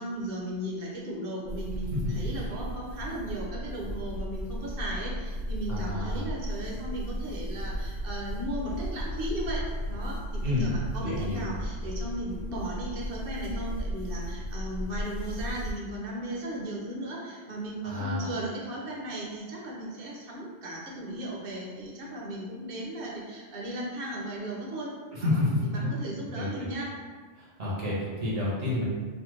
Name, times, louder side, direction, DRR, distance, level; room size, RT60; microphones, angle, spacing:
voice 1, 0.0-26.9, right 1 dB, 55° right, -3 dB, 0.8 m, -36 dB
sound 1, 1.4-15.7, equal, 65° left, 0.9 m, -35 dB
voice 2, 5.7-6.2 10.4-10.7 11.0-11.4 17.8-18.3 25.1-25.9 26.4-26.5 27.3-28.8, left 2 dB, 75° right, -6 dB, 1.2 m, -29 dB
3.4 x 2.2 x 3.0 m, 1.4 s
omnidirectional pair, 1.2 m